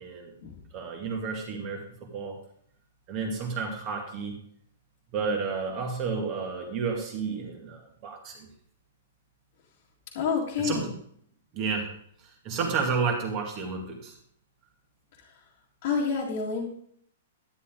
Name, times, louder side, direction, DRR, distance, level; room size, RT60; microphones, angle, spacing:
voice 1, 0.0-0.3 0.7-2.4 3.1-4.3 5.1-8.5 10.6-10.9 11.5-11.9 12.4-14.2, right 5 dB, 25° right, 1 dB, 2.1 m, -31 dB
voice 2, 10.1-10.9 15.3-15.4 15.8-16.7, left 5 dB, 40° left, -4 dB, 2.0 m, -28 dB
11.0 x 9.8 x 3.7 m, 0.65 s
hypercardioid pair, 175°, 0 cm